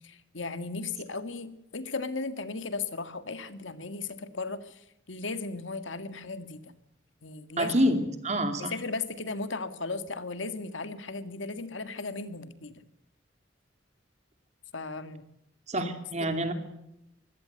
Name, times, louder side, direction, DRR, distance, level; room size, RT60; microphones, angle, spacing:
voice 1, 0.0-6.7 7.2-7.7 8.6-12.8 14.7-15.3 15.8-15.9 16.2-16.3, left 3 dB, 85° left, 11 dB, 2.0 m, -36 dB
voice 2, 7.6-8.7 15.7-16.5, equal, 35° right, 8 dB, 2.7 m, -27 dB
24.5 x 16.5 x 8.2 m, 0.83 s
head